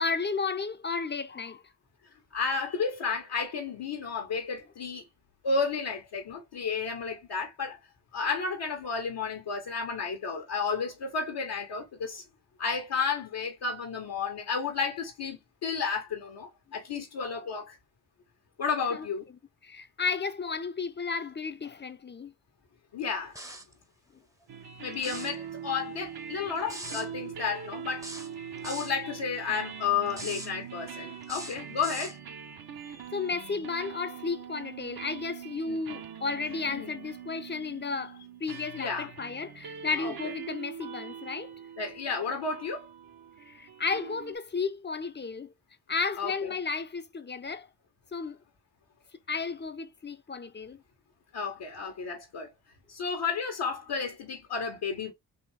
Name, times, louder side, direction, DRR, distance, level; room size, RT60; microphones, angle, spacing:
voice 1, 0.0-1.6 18.9-19.1 19.6-22.3 33.1-41.5 43.5-45.5 45.9-47.7 48.1-48.4 49.3-50.8, left 4 dB, 25° left, 0.6 m, -33 dB
voice 2, 2.3-5.1 5.4-7.8 8.1-12.2 12.6-17.8 18.6-19.2 22.9-23.4 24.8-28.1 28.6-32.2 32.8-33.0 35.7-35.8 36.7-36.9 38.8-39.1 40.0-40.1 41.8-42.9 46.2-46.5 51.3-52.5 52.9-55.1, left 5 dB, 75° left, 1.3 m, -32 dB
sound 1, 23.4-23.7 24.9-25.4 26.7-27.1 28.0-29.0 30.1-30.5 31.2-32.2, right 1 dB, 10° right, 0.7 m, -40 dB
sound 2, 24.5-44.4, right 8 dB, 65° right, 1.0 m, -43 dB
4.2 x 2.7 x 3.2 m
cardioid pair, 60°, 40 cm